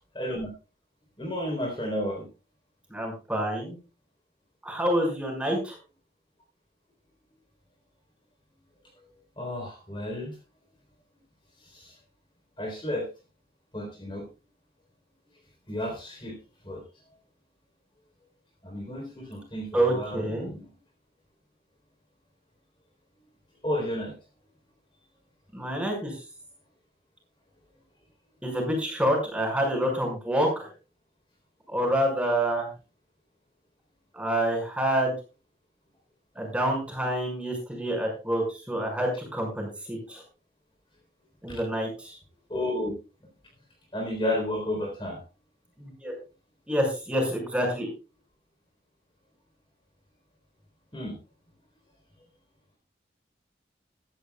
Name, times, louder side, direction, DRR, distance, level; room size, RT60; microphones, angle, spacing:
voice 1, 0.1-0.5 1.2-2.3 9.4-10.4 11.6-11.9 12.6-13.1 13.7-14.2 15.7-16.3 16.6-16.8 18.6-20.6 23.6-24.1 41.5-41.6 42.5-42.9 43.9-45.2 50.9-51.2, left 1 dB, 30° left, 1 dB, 3.9 m, -32 dB
voice 2, 2.9-3.8 4.6-5.8 19.7-20.5 25.5-26.2 28.4-30.7 31.7-32.7 34.1-35.1 36.3-40.2 41.4-42.2 45.8-46.1 46.7-47.9, right 1 dB, 5° right, 0 dB, 5.8 m, -27 dB
16.0 x 14.0 x 2.4 m, 0.32 s
head